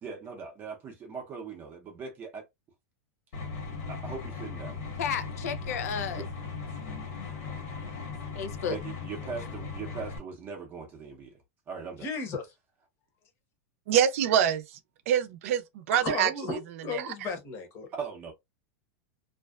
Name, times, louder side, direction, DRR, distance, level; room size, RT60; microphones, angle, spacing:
voice 1, 0.0-2.4 3.9-4.8 6.1-6.3 8.7-11.4 11.7-12.1 18.0-18.3, right 5 dB, 25° right, 0.6 m, -40 dB
sound 1, 3.3-10.2, left 4 dB, 65° left, 1.2 m, -38 dB
voice 2, 5.0-6.2 6.8-8.8, left 7 dB, 90° left, 0.5 m, -35 dB
voice 3, 12.0-12.5 15.9-17.9, left 4 dB, 30° left, 0.9 m, -35 dB
voice 4, 13.9-14.8 15.1-16.6 16.9-17.1, right 9 dB, 65° right, 0.5 m, -26 dB
2.5 x 2.2 x 2.3 m
supercardioid pair, 155°, 8 cm